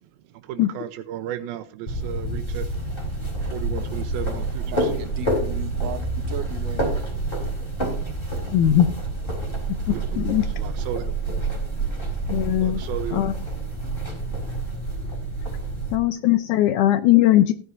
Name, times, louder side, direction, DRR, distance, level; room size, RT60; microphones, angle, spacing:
voice 1, 0.0-2.8 3.5-4.9 7.3-8.3 9.5-13.3 13.7-16.1, right 10 dB, 90° right, 2.6 m, -37 dB
sound 1, 1.9-16.0, right 2 dB, 15° left, 3.8 m, -28 dB
voice 2, 4.6-7.1, right 8 dB, 55° right, 2.2 m, -36 dB
voice 3, 8.5-8.9 9.9-10.4 12.3-12.8 13.1-13.3 15.9-17.5, left 13 dB, 75° left, 1.9 m, -19 dB
16.5 x 11.0 x 2.7 m
omnidirectional pair, 4.3 m